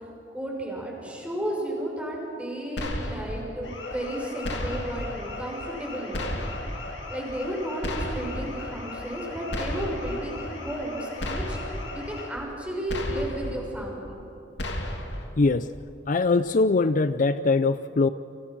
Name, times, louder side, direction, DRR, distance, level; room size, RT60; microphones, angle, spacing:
voice 1, 0.3-6.4 7.1-11.6 11.9-14.2, right 1 dB, 5° right, -2 dB, 6.5 m, -33 dB
sound 1, 2.8-3.4 4.4-5.1 6.1-6.8 7.8-8.5 9.5-10.2 11.2-11.9 12.9-13.6 14.6-15.3, left 1 dB, 70° left, 2.9 m, -32 dB
sound 2, 3.6-12.3, left 3 dB, 85° left, 6.1 m, -39 dB
voice 2, 15.4-15.7 16.1-18.1, left 3 dB, 45° left, 12 dB, 0.5 m, -22 dB
30.0 x 26.0 x 6.2 m, 2.9 s
head